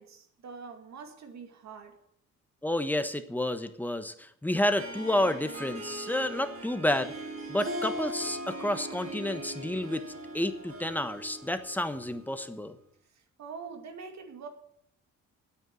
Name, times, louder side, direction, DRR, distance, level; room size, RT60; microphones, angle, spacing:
voice 1, 0.0-2.0 13.4-14.5, right 5 dB, 65° right, 5 dB, 2.4 m, -44 dB
voice 2, 2.6-7.1 7.5-10.0 10.3-12.7, left 1 dB, 5° left, 9 dB, 1.2 m, -30 dB
Harp, 4.7-12.5, right 1 dB, 45° right, 3.5 m, -40 dB
9.1 x 8.7 x 9.2 m, 0.69 s
cardioid pair, 90°, 30 cm